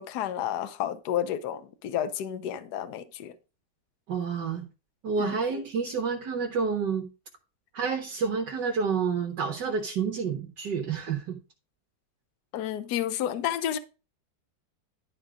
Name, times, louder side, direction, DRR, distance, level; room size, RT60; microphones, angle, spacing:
voice 1, 0.0-3.3 5.2-5.4 12.5-13.8, left 10 dB, 65° left, 1.2 m, -31 dB
voice 2, 4.1-4.6 5.0-7.1 7.7-11.4, right 5 dB, 65° right, 1.8 m, -29 dB
11.5 x 4.3 x 5.0 m
omnidirectional pair, 2.0 m